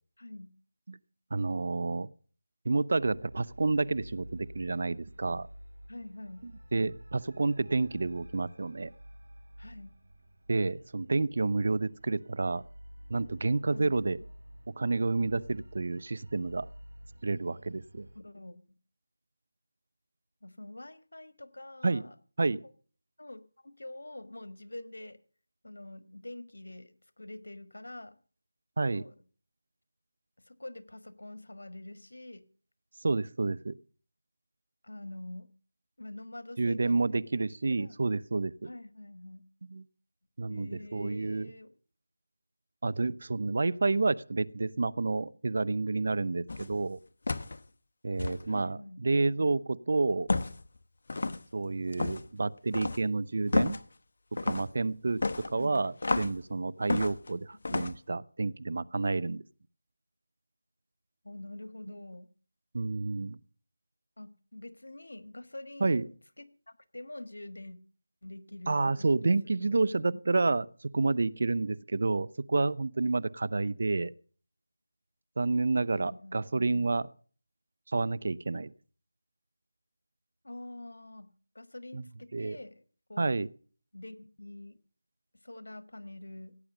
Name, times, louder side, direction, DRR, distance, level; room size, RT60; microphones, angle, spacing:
voice 1, 0.2-0.6 5.9-6.5 9.6-10.0 13.7-14.0 18.1-18.8 20.4-22.1 23.2-25.2 25.6-28.2 28.9-29.1 30.5-32.5 34.8-35.5 36.0-37.0 37.4-38.0 38.6-39.4 40.5-41.7 48.4-49.0 55.5-55.9 61.2-62.3 64.2-67.8 68.2-69.3 69.6-70.1 75.9-76.5 80.4-82.8 83.1-83.4 83.9-84.8 85.4-86.6, left 1 dB, 80° left, 1.4 m, -46 dB
voice 2, 1.3-2.1 2.6-5.5 6.7-8.9 10.5-12.6 13.1-14.2 14.8-16.7 17.2-18.1 21.8-22.0 22.4-22.6 28.8-29.0 33.0-33.8 36.6-38.7 39.7-39.8 40.4-41.5 42.8-47.0 48.0-50.3 51.5-53.8 54.4-59.4 62.7-63.4 65.8-66.0 68.7-74.1 75.4-77.1 77.9-78.7 81.9-82.0 82.3-82.6 83.2-83.5, right 3 dB, 55° right, 0.6 m, -29 dB
sound 1, 2.9-18.2, equal, 75° right, 3.0 m, -51 dB
sound 2, 46.5-46.8 47.3-47.6 48.2-48.4 50.3-50.6 51.1-51.4 51.9-52.3 52.7-53.0 53.5-53.8 54.4-54.7 55.2-56.4 56.9-57.3 57.6-57.9, left 3 dB, 50° left, 0.9 m, -31 dB
17.0 x 8.7 x 6.5 m
figure-of-eight pair, 165°, 0 cm